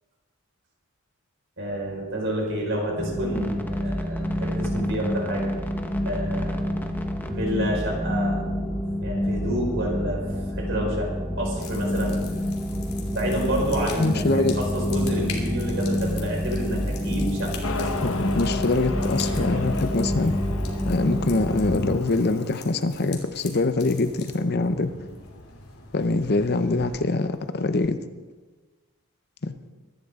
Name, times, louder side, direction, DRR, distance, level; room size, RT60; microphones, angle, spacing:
voice 1, 1.6-5.5 6.0-6.7 7.3-8.4 9.0-10.2 10.5-11.1 11.4-12.2 13.1-17.9 19.0-19.9 24.9-25.1, equal, 60° right, -1 dB, 5.0 m, -29 dB
sound 1, 3.0-22.0, equal, 10° left, 1.0 m, -28 dB
sound 2, 11.6-27.9, left 5 dB, 85° left, 2.9 m, -44 dB
voice 2, 14.0-14.6 18.0-20.4 20.8-24.9 25.9-28.0 29.4-29.5, left 2 dB, 45° left, 10 dB, 0.7 m, -24 dB
Motorcycle, 17.6-22.6, left 3 dB, 65° left, 1.2 m, -34 dB
23.0 x 12.0 x 3.7 m, 1.3 s
head